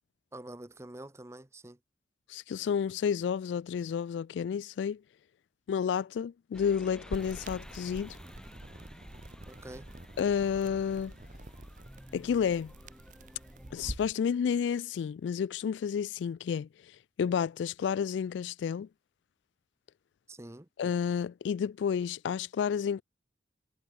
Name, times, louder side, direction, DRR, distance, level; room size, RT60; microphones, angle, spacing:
voice 1, 0.3-1.8 9.5-9.9 20.3-20.7, right 1 dB, 15° right, 0.8 m, -46 dB
voice 2, 2.3-5.0 5.7-8.2 10.2-11.1 12.1-12.7 13.7-16.7 17.2-18.9 20.8-23.0, left 7 dB, 80° left, 0.3 m, -30 dB
sound 1, 6.5-13.9, equal, 5° left, 1.7 m, -52 dB
sound 2, 7.1-14.1, right 1 dB, 45° right, 1.4 m, -46 dB
head